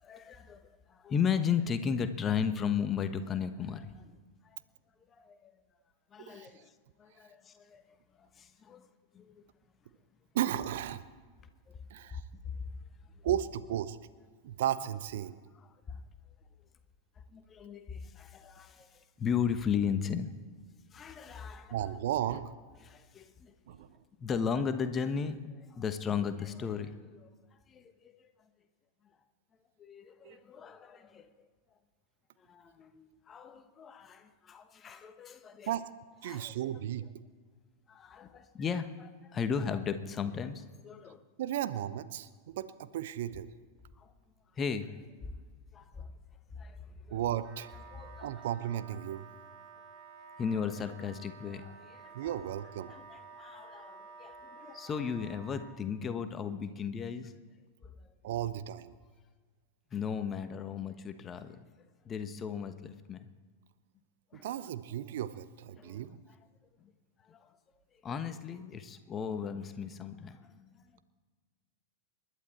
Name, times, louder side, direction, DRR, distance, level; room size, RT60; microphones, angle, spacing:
voice 1, 0.0-4.2 5.2-5.5 6.1-6.7 7.0-7.8 8.4-8.9 9.1-9.4 11.7-11.8 15.6-16.0 17.3-20.3 20.9-21.9 22.8-23.5 24.2-27.3 27.7-28.3 29.8-31.5 32.5-35.7 36.3-36.6 37.9-41.2 44.0-44.1 44.6-45.4 45.7-46.1 46.5-47.2 47.9-48.3 50.4-52.3 52.9-57.3 57.8-57.9 59.9-61.6 62.0-63.3 64.3-64.5 65.8-66.2 66.8-66.9 67.3-67.5 68.0-70.8, left 7 dB, 25° left, 10 dB, 1.2 m, -36 dB
voice 2, 10.3-11.0 11.9-12.2 13.2-14.0 14.4-15.4 21.7-22.5 23.7-23.9 30.2-30.4 35.7-35.8 36.2-37.1 41.4-43.5 47.1-47.7 48.2-49.3 52.1-52.9 58.2-58.9 64.3-66.1, right 11 dB, 55° right, 14 dB, 0.7 m, -34 dB
Wind instrument woodwind instrument, 47.4-55.8, right 4 dB, 35° right, 2.2 m, -52 dB
28.5 x 11.5 x 4.4 m, 1.5 s
figure-of-eight pair, 90°, 0 cm